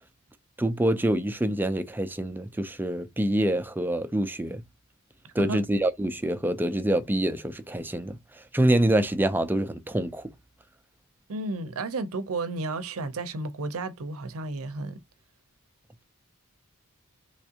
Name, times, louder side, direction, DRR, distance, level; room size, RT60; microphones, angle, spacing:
voice 1, 0.6-4.6 5.3-8.2 8.5-10.3, right 1 dB, 10° right, 0.4 m, -26 dB
voice 2, 11.3-15.0, right 2 dB, 70° right, 0.6 m, -32 dB
3.5 x 3.2 x 2.8 m
head